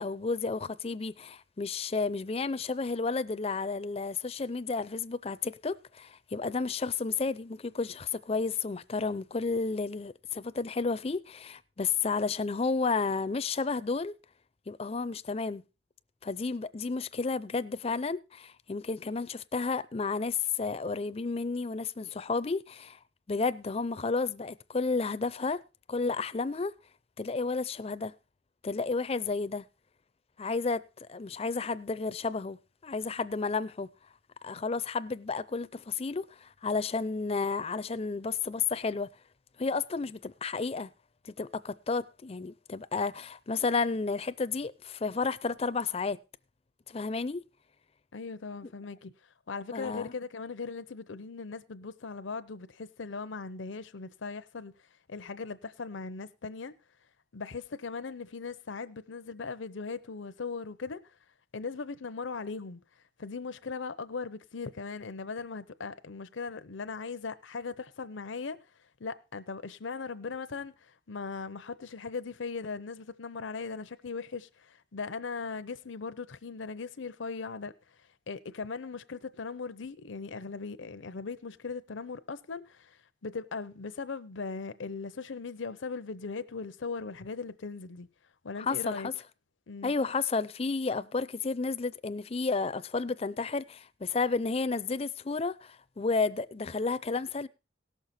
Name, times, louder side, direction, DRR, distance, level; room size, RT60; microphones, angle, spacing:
voice 1, 0.0-14.1 14.7-15.6 16.2-23.0 23.3-25.6 25.9-26.7 27.2-28.1 28.6-29.7 30.4-33.9 34.4-39.1 39.6-40.9 41.2-46.2 46.9-47.4 49.7-50.1 88.6-89.1 89.8-97.5, left 4 dB, 30° left, 0.5 m, -32 dB
voice 2, 48.1-49.1 49.5-54.7 55.1-56.8 57.3-61.1 61.5-62.8 63.2-68.6 69.0-77.7 78.3-88.1 88.4-89.1 89.7-89.9, left 4 dB, 80° left, 0.7 m, -39 dB
17.5 x 6.6 x 4.2 m
head